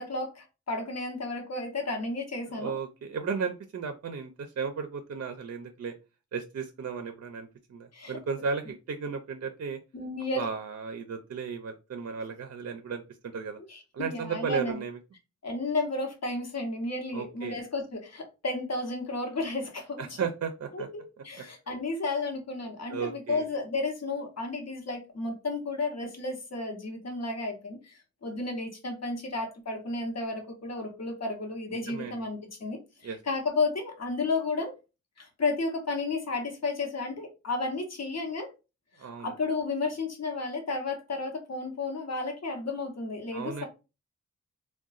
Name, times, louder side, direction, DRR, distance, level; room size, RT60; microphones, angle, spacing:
voice 1, 0.0-2.7 7.9-8.2 9.9-10.5 13.7-14.8 15.4-20.2 20.7-34.7 35.2-38.5 39.2-43.7, left 3 dB, 60° left, 3 dB, 0.9 m, -32 dB
voice 2, 2.5-5.9 6.3-9.8 10.3-13.0 13.3-13.6 13.9-15.0 17.1-17.6 20.0-20.9 22.9-23.4 31.9-32.2 33.0-33.2 39.0-39.3 43.3-43.7, right 5 dB, 60° right, 7 dB, 0.4 m, -34 dB
3.7 x 2.2 x 2.4 m, 0.29 s
wide cardioid pair, 115°, 29 cm